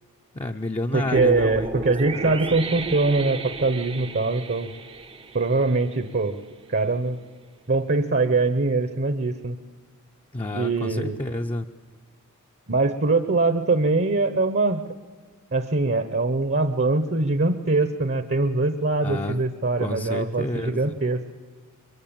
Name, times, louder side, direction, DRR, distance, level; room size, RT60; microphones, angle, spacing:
voice 1, 0.3-2.3 10.3-11.7 19.0-19.4 19.8-21.0, left 1 dB, 25° left, 3 dB, 0.7 m, -30 dB
voice 2, 0.9-4.7 5.3-6.4 6.7-7.2 7.7-9.6 10.5-11.2 12.7-14.8 15.5-21.2, right 3 dB, 50° right, 10 dB, 1.0 m, -23 dB
sound 1, 1.1-6.3, right 3 dB, 25° right, 0.7 m, -34 dB
23.5 x 23.0 x 8.9 m, 1.5 s
head